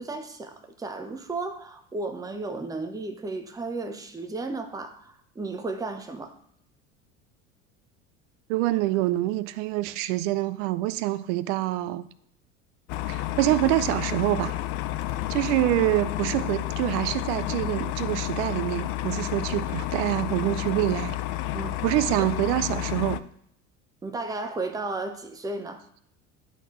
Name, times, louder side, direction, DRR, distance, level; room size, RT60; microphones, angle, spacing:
voice 1, 0.0-6.4 15.1-15.2 21.5-21.8 22.2-22.3 24.0-25.8, right 3 dB, 10° right, 0.7 m, -34 dB
voice 2, 8.5-12.0 13.1-14.6 15.3-21.2 21.8-23.2, right 16 dB, 65° right, 0.5 m, -26 dB
sound 1, 12.9-23.2, left 14 dB, 55° left, 0.5 m, -31 dB
10.5 x 4.0 x 3.1 m
hypercardioid pair, 80°, 39 cm